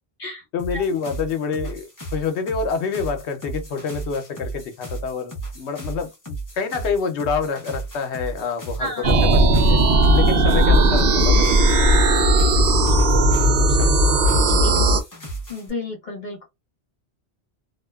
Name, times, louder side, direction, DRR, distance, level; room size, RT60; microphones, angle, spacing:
voice 1, 0.5-9.8 10.1-13.3 13.6-14.6, left 5 dB, 90° left, 0.9 m, -28 dB
sound 1, 0.6-15.7, right 2 dB, 20° left, 0.6 m, -35 dB
voice 2, 8.8-9.1 14.3-14.8 15.5-16.5, left 1 dB, 50° left, 0.8 m, -32 dB
sound 2, 9.0-15.0, right 1 dB, 65° right, 0.8 m, -16 dB
2.6 x 2.1 x 2.2 m
omnidirectional pair, 1.1 m